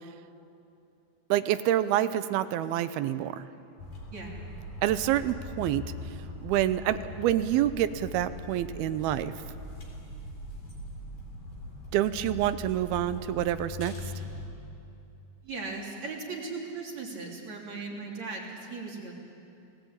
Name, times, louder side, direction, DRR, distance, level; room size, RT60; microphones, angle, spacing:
voice 1, 1.3-3.5 4.8-5.9 6.4-9.3 11.9-13.9, right 12 dB, 85° right, 13 dB, 2.7 m, -27 dB
sound 1, 3.8-14.5, left 2 dB, 65° left, 5.8 m, -41 dB
voice 2, 4.0-4.5 15.4-19.1, right 3 dB, 45° right, -1 dB, 4.3 m, -38 dB
30.0 x 19.5 x 8.8 m, 2.7 s
omnidirectional pair, 4.4 m